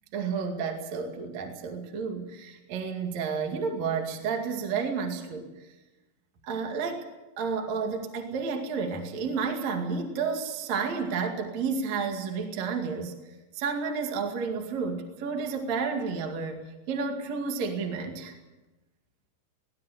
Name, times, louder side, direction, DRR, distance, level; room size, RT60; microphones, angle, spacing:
voice 1, 0.1-5.5 6.4-7.1 7.4-13.2 13.5-18.3, right 5 dB, 45° right, 4 dB, 2.6 m, -31 dB
19.5 x 18.5 x 8.1 m, 1.1 s
omnidirectional pair, 5.9 m